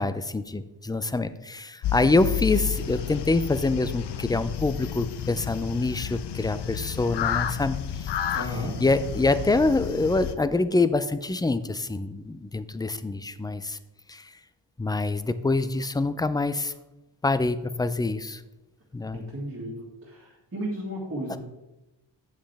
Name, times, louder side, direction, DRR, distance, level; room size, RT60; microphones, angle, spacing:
voice 1, 0.0-7.8 8.8-13.8 14.1-14.2 14.8-16.7 17.2-18.4 18.9-19.2 21.3-21.4, left 3 dB, 10° left, 13 dB, 0.4 m, -25 dB
sound 1, 1.8-10.4, left 9 dB, 65° left, 0.6 m, -31 dB
voice 2, 8.3-8.8 19.1-21.4, right 1 dB, 30° right, -7 dB, 2.2 m, -34 dB
8.9 x 7.3 x 3.4 m, 1.0 s
cardioid pair, 85°, 44 cm